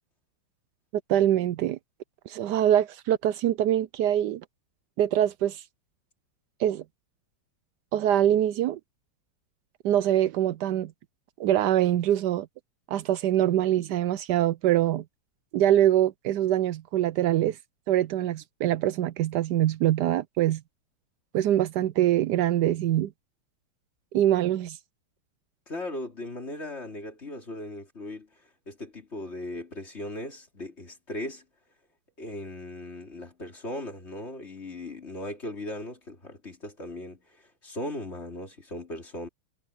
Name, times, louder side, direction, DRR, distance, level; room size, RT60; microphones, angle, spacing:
voice 1, 1.1-1.8 2.3-4.4 5.0-5.6 6.6-6.8 7.9-8.8 9.8-10.9 11.4-12.5 12.9-15.0 15.5-17.6 17.9-20.6 21.3-23.1 24.1-24.8, right 12 dB, 85° right, 0.9 m, -24 dB
voice 2, 25.7-28.3 28.7-31.4 32.2-39.3, left 1 dB, 30° left, 3.7 m, -38 dB
omnidirectional pair, 2.4 m